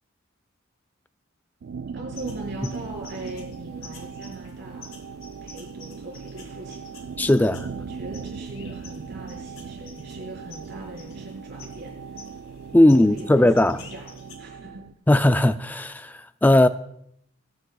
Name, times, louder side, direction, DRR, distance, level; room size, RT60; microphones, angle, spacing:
sound 1, 1.6-14.9, right 5 dB, 75° right, 0.4 m, -38 dB
voice 1, 1.9-4.9 5.4-6.9 7.7-12.2 13.1-14.1 14.4-14.8, right 1 dB, 55° right, 4.6 m, -40 dB
sound 2, 2.1-14.4, left 5 dB, 80° left, 1.8 m, -50 dB
voice 2, 7.2-7.7 12.7-13.8 15.1-16.7, left 1 dB, 10° left, 0.3 m, -18 dB
20.5 x 9.6 x 2.3 m
head